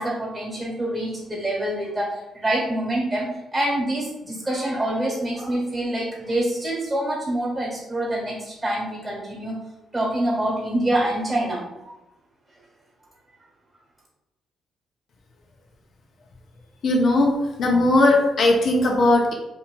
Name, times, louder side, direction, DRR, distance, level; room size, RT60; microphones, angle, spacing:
voice 1, 0.0-9.6 9.9-11.9, right 1 dB, 15° right, -5 dB, 1.2 m, -26 dB
voice 2, 16.8-19.3, left 2 dB, 55° left, 1 dB, 0.6 m, -18 dB
2.9 x 2.6 x 2.2 m, 0.98 s
cardioid pair, 90°, 0 cm